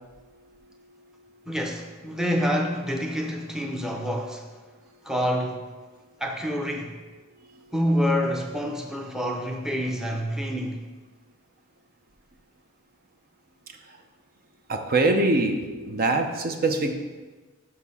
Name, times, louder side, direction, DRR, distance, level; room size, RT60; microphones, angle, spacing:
voice 1, 1.5-4.5 5.0-5.6 6.2-6.9 7.7-10.8, equal, 5° right, 2 dB, 0.7 m, -27 dB
voice 2, 14.7-16.9, right 2 dB, 45° right, 5 dB, 0.7 m, -23 dB
6.7 x 5.9 x 5.5 m, 1.3 s
head